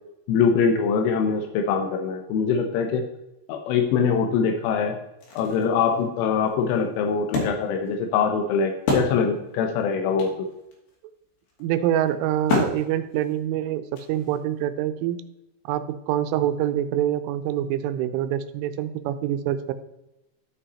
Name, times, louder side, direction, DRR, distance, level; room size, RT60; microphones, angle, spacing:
voice 1, 0.3-3.0 3.5-5.0 5.3-10.5, left 6 dB, 85° left, 4 dB, 3.3 m, -23 dB
Wood, 4.5-4.6 5.0-9.6 9.9-10.0 10.2-14.6, left 3 dB, 60° left, 4.1 m, -31 dB
voice 2, 11.6-15.2 15.7-19.7, right 11 dB, 90° right, 10 dB, 3.2 m, -25 dB
13.5 x 5.6 x 4.1 m, 0.91 s
omnidirectional pair, 5.5 m